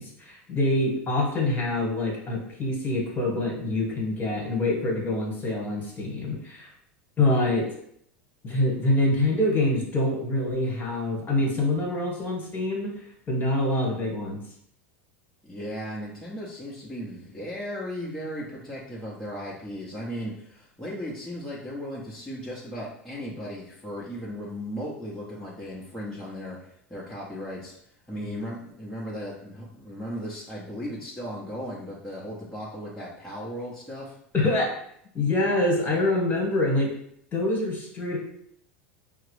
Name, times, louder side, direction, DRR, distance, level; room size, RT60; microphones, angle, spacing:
voice 1, 0.0-6.7 7.2-7.6 8.4-12.9 13.3-14.4 28.2-28.3 34.3-34.7 35.1-36.9 37.3-38.2, left 2 dB, 25° left, 0 dB, 1.5 m, -25 dB
voice 2, 15.4-27.7 28.1-34.2, equal, 10° left, -8 dB, 1.0 m, -36 dB
5.5 x 2.0 x 3.2 m, 0.69 s
hypercardioid pair, 85°, 7 cm